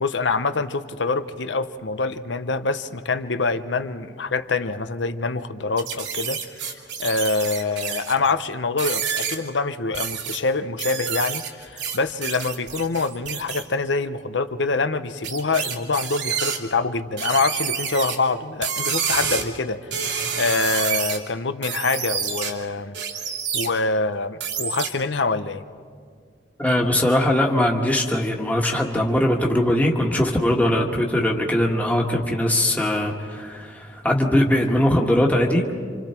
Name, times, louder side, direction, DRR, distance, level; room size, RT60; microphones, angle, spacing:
voice 1, 0.0-6.7 7.0-23.0 23.5-25.6, left 3 dB, 75° left, 11 dB, 0.9 m, -25 dB
sound 1, 5.8-8.3 8.8-9.4 9.9-10.4 10.8-13.6 15.2-16.6 17.2-18.2 18.6-19.5 19.9-21.2 21.6-22.5 22.9-23.7 24.4-24.9, right 7 dB, 85° right, 2.5 m, -28 dB
voice 2, 26.6-35.8, left 1 dB, 10° left, -1 dB, 1.7 m, -21 dB
29.5 x 26.5 x 4.5 m, 2.1 s
head